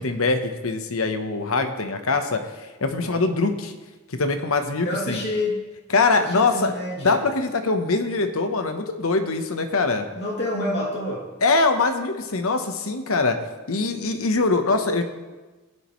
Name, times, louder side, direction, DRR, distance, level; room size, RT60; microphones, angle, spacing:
voice 1, 0.0-3.7 4.1-5.2 5.9-6.7 7.0-10.1 11.4-13.4 13.7-15.0, left 3 dB, 70° left, 7 dB, 1.0 m, -23 dB
voice 2, 4.8-5.6 6.2-7.2 10.1-11.3, left 1 dB, 50° left, -3 dB, 2.7 m, -28 dB
15.5 x 10.5 x 3.2 m, 1.2 s
head